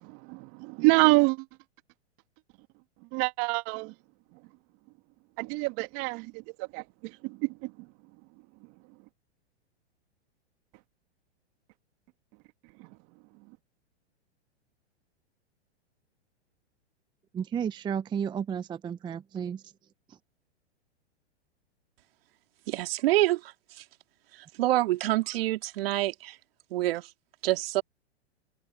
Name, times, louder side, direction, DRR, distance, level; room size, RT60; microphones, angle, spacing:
voice 1, 0.0-1.5 3.1-3.9 5.4-7.9 12.8-12.9, right 26 dB, 40° right, 2.0 m, -27 dB
voice 2, 17.3-19.7 20.1-20.2, right 8 dB, 15° right, 0.6 m, -33 dB
voice 3, 22.7-23.8 24.6-26.4 26.7-27.1 27.4-27.8, right 16 dB, 60° right, 2.3 m, -27 dB
hypercardioid pair, 120°, 34 cm